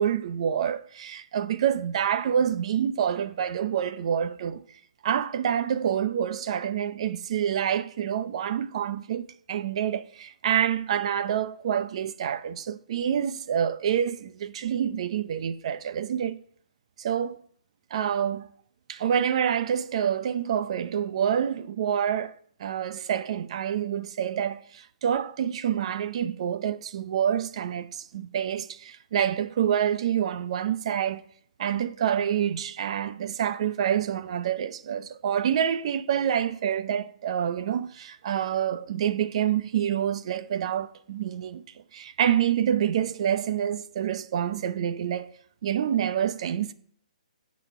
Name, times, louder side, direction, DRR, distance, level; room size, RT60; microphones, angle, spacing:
voice 1, 0.0-4.6 5.0-16.4 17.0-17.4 17.9-18.5 18.9-22.3 22.6-31.2 31.6-41.6 41.9-45.3 45.6-46.7, right 9 dB, 50° right, 0.8 m, -27 dB
17.5 x 6.4 x 4.4 m
hypercardioid pair, 150°, 4 cm